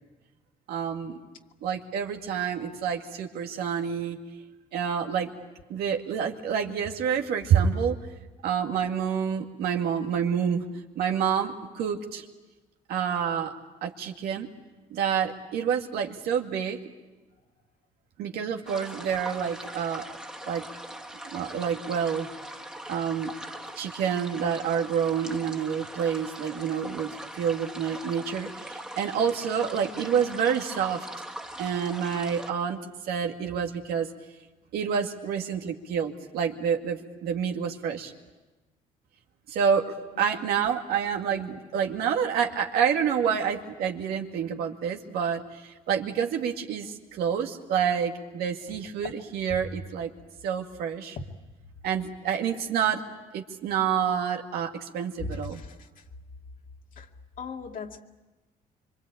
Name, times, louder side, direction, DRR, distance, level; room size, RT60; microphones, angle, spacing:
voice 1, 0.7-1.2 1.6-4.2 4.7-5.3 5.7-8.0 8.4-10.6 11.0-12.3 12.9-13.5 13.8-14.5 14.9-16.8 18.2-20.1 20.5-20.7 21.3-22.3 22.9-23.3 23.8-31.1 31.6-34.1 34.7-38.1 39.5-50.1 50.4-51.2 51.8-53.0 53.3-55.6, right 7 dB, 85° right, 3 dB, 2.3 m, -28 dB
sound 1, 18.7-32.5, right 1 dB, 5° right, 1.9 m, -41 dB
voice 2, 55.3-55.7 57.0-57.1 57.4-58.0, left 4 dB, 60° left, 2 dB, 2.4 m, -38 dB
26.0 x 24.5 x 8.7 m, 1.1 s
cardioid pair, 95°, 16 cm